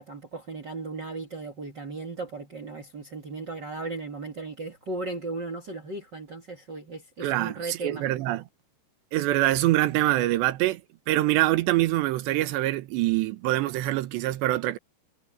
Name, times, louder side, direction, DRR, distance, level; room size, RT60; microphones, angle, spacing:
voice 1, 0.0-8.1, right 3 dB, 45° right, 1.4 m, -36 dB
voice 2, 7.2-8.4 9.1-10.8 11.1-14.8, right 16 dB, 90° right, 3.3 m, -24 dB
omnidirectional pair, 4.9 m